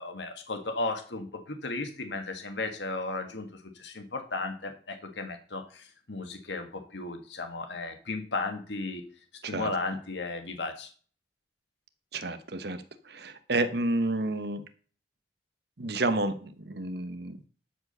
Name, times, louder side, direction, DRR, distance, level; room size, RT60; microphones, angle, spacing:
voice 1, 0.0-3.5 3.8-9.0 9.5-10.9, left 3 dB, 70° left, 6 dB, 1.8 m, -35 dB
voice 2, 12.1-12.8 13.1-14.6 15.8-17.4, right 2 dB, 60° right, 11 dB, 1.1 m, -30 dB
12.5 x 5.0 x 6.8 m, 0.41 s
head